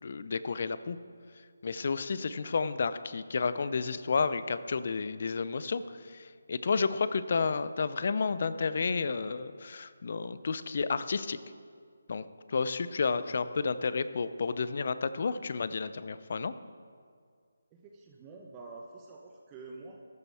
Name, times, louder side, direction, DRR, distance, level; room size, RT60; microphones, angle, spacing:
voice 1, 0.0-1.0 1.6-11.4 12.1-16.5, left 4 dB, 50° left, 13 dB, 0.6 m, -31 dB
voice 2, 17.7-20.0, right 3 dB, 20° right, -1 dB, 1.0 m, -47 dB
14.0 x 13.5 x 3.5 m, 2.1 s
figure-of-eight pair, 160°, 0 cm